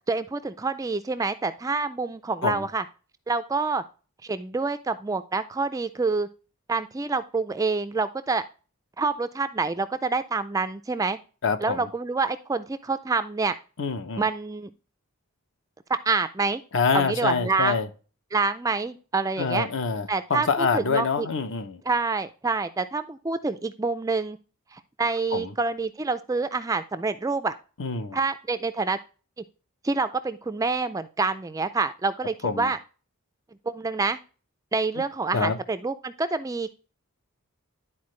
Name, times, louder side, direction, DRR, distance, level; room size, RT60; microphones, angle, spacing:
voice 1, 0.1-2.8 3.3-3.8 4.2-6.3 6.7-8.4 9.0-11.2 11.6-13.5 14.2-14.7 15.9-16.6 16.9-17.8 18.3-19.7 20.1-21.3 21.9-24.4 24.7-27.5 28.1-29.0 29.8-32.8 33.7-34.2 34.7-36.7, right 4 dB, 15° right, 0.3 m, -27 dB
voice 2, 11.4-11.9 13.8-14.2 16.7-17.9 19.4-21.8 25.3-25.5 27.8-28.2 32.4-32.7 35.3-35.6, left 4 dB, 55° left, 0.8 m, -26 dB
11.5 x 4.3 x 3.2 m
head